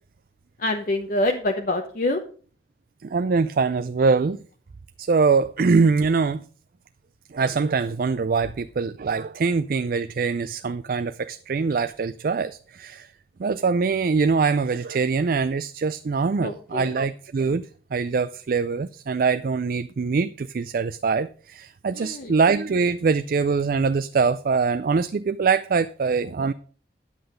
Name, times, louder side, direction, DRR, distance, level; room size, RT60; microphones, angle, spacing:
voice 1, 0.6-2.2 16.4-16.9 21.9-22.3, left 1 dB, 50° left, 0.9 m, -26 dB
voice 2, 3.0-4.4 5.0-6.4 7.3-13.1 13.4-17.7 17.9-26.5, right 4 dB, 55° right, 0.4 m, -23 dB
9.7 x 7.9 x 5.0 m
head